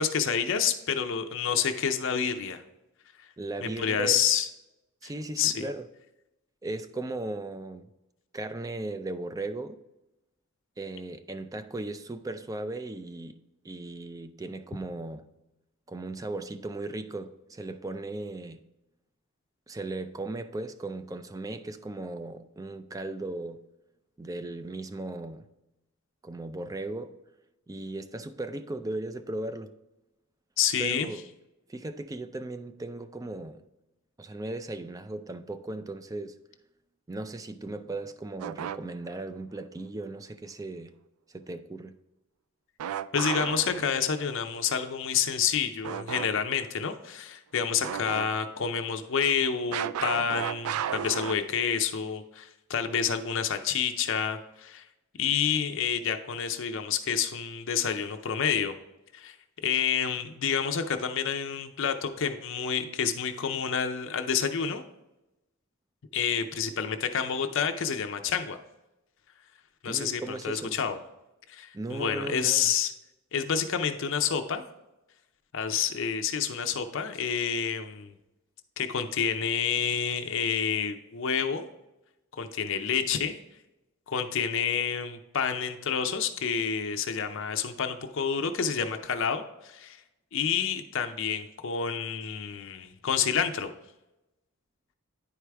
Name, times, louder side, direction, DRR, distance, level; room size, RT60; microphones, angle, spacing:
voice 1, 0.0-2.6 3.6-4.5 5.0-5.1 5.4-5.6 30.6-31.1 43.1-54.8 55.2-58.7 59.1-59.3 59.6-64.8 66.1-68.6 69.8-71.0 71.5-72.9 73.3-74.6 75.5-78.1 78.8-81.7 82.4-83.4 84.1-90.0 90.3-93.7, left 7 dB, 60° left, 0.5 m, -28 dB
voice 2, 3.4-4.3 5.0-5.9 6.6-7.9 8.3-9.8 10.8-13.4 13.6-15.3 15.9-18.6 19.7-23.6 24.2-25.4 26.2-27.2 27.7-29.7 30.8-31.3 31.7-33.6 34.2-36.4 37.1-40.9 41.3-41.9 69.9-70.8 71.7-72.7, right 2 dB, 15° right, 0.4 m, -37 dB
sound 1, 38.4-39.2 42.8-44.3 45.8-46.3 46.6-46.7 47.8-48.6 49.7-51.3, right 9 dB, 85° right, 0.3 m, -34 dB
9.9 x 4.7 x 3.4 m
head